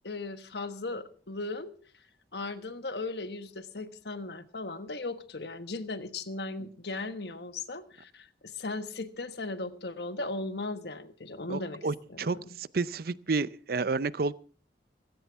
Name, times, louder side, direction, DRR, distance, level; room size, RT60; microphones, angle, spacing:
voice 1, 0.0-1.7 2.3-11.8 12.1-12.5, left 3 dB, 70° left, 10 dB, 1.3 m, -37 dB
voice 2, 11.5-14.3, right 4 dB, 60° right, 17 dB, 0.6 m, -31 dB
18.0 x 16.0 x 3.6 m, 0.41 s
head